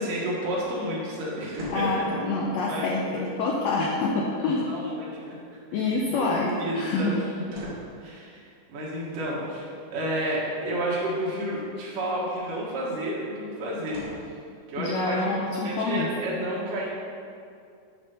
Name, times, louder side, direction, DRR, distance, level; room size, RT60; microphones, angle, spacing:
voice 1, 0.0-2.1 2.6-3.3 4.7-5.4 5.7-6.2 6.6-7.3 7.6-8.4 8.7-9.7 9.9-14.0 14.7-15.3 15.6-16.9, right 1 dB, 75° right, -5 dB, 3.1 m, -31 dB
sound 1, 1.5-2.0 4.5-5.2 6.2-6.6 7.5-8.0 11.5-12.0 13.9-14.4 15.1-15.2, equal, 45° right, 1.3 m, -44 dB
voice 2, 1.7-4.7 5.7-7.1 14.8-16.1, left 3 dB, 80° left, -2 dB, 1.6 m, -26 dB
9.4 x 4.2 x 5.5 m, 2.4 s
omnidirectional pair, 3.8 m